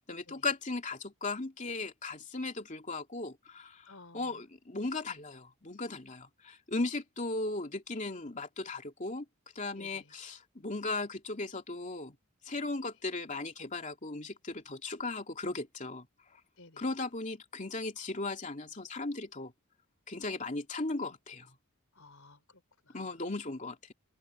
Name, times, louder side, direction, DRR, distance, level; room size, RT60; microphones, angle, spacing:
voice 1, 0.0-9.2 9.5-12.2 12.4-16.1 16.8-19.5 20.1-21.6 22.9-23.9, left 3 dB, 35° left, 2.7 m, -37 dB
voice 2, 3.9-4.4 9.8-10.1 16.6-16.9 21.9-23.2, left 2 dB, 75° left, 4.7 m, -56 dB
open air
head